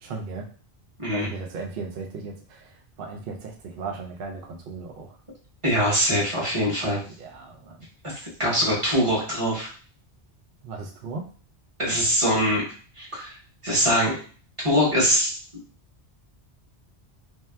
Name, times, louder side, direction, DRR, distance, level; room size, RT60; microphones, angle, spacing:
voice 1, 0.0-0.5 1.1-2.7 3.0-5.2 7.2-7.8 10.6-11.2, right 4 dB, 60° right, 2 dB, 0.7 m, -36 dB
voice 2, 5.6-7.0 8.4-9.7 11.8-12.6 13.0-13.3 13.6-14.1 14.6-15.3, equal, 30° right, -5 dB, 1.0 m, -22 dB
3.3 x 2.8 x 2.2 m, 0.40 s
omnidirectional pair, 1.2 m